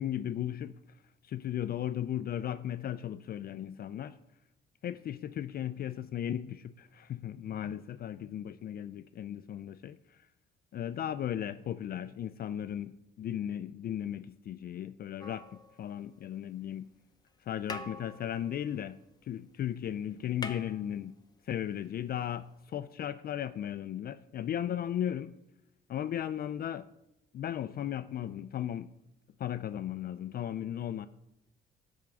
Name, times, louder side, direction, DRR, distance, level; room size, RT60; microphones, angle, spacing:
voice 1, 0.0-4.2 4.8-10.3 10.7-16.9 17.4-19.0 19.2-21.1 21.4-25.3 25.9-26.9 27.3-28.9 29.4-31.1, left 10 dB, 50° left, 0.4 m, -36 dB
sound 1, 15.2-16.4 17.3-17.4 17.6-19.5 19.8-19.9 20.1-21.5 22.7-22.8, left 3 dB, 20° left, 0.8 m, -45 dB
10.0 x 3.6 x 6.9 m
cardioid pair, 90°, 20 cm